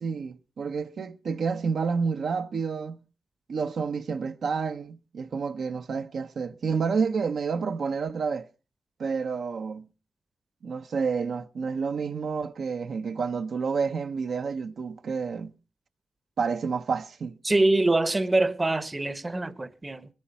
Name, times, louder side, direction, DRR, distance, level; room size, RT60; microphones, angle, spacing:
voice 1, 0.0-3.0 3.5-8.5 9.0-9.9 10.6-15.5 16.4-17.4, right 5 dB, 70° right, 0.7 m, -29 dB
voice 2, 17.4-20.1, right 2 dB, 25° right, 0.8 m, -24 dB
21.0 x 11.0 x 4.3 m
cardioid pair, 60°, 0 cm